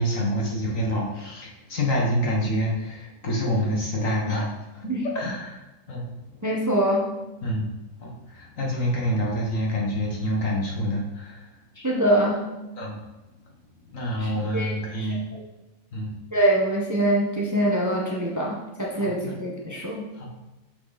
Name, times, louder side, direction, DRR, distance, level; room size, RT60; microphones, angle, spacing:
voice 1, 0.0-6.4 7.4-7.7 8.0-11.6 12.8-13.0 13.5-15.3 15.9-16.2 18.9-19.4 20.1-20.4, equal, 60° left, -2 dB, 1.8 m, -27 dB
voice 2, 6.4-7.0 11.8-12.4 14.2-14.7 16.3-20.0, right 1 dB, 15° right, -3 dB, 1.1 m, -24 dB
6.9 x 5.9 x 4.1 m, 1.0 s
omnidirectional pair, 1.6 m